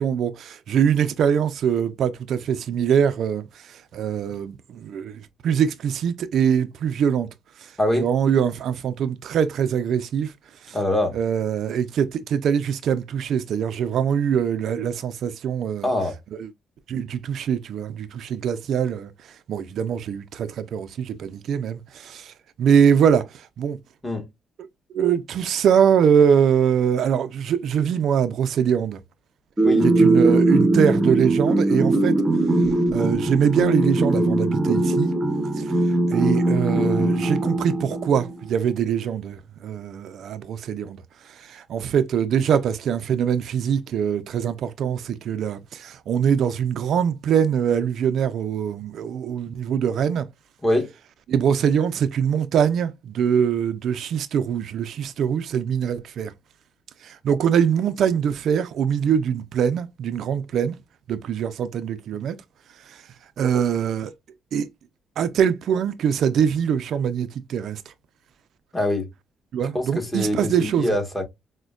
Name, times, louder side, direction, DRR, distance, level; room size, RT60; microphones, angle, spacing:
voice 1, 0.0-7.3 7.6-10.3 10.6-10.8 11.1-15.9 16.3-16.5 16.9-23.8 24.9-29.0 29.8-32.2 32.9-35.1 35.6-35.7 36.1-50.3 51.3-56.3 57.0-60.8 61.1-62.4 62.9-63.0 63.4-64.1 64.5-64.7 65.2-67.8 69.5-70.9, right 8 dB, 70° right, 0.4 m, -23 dB
voice 2, 10.7-11.2 15.8-16.2 24.0-24.3 29.6-29.9 50.6-50.9 68.7-69.1 69.7-71.2, left 1 dB, 10° left, 1.2 m, -23 dB
sound 1, 29.6-38.3, right 2 dB, 20° right, 0.7 m, -20 dB
5.0 x 2.1 x 2.3 m
cardioid pair, 90°, 0 cm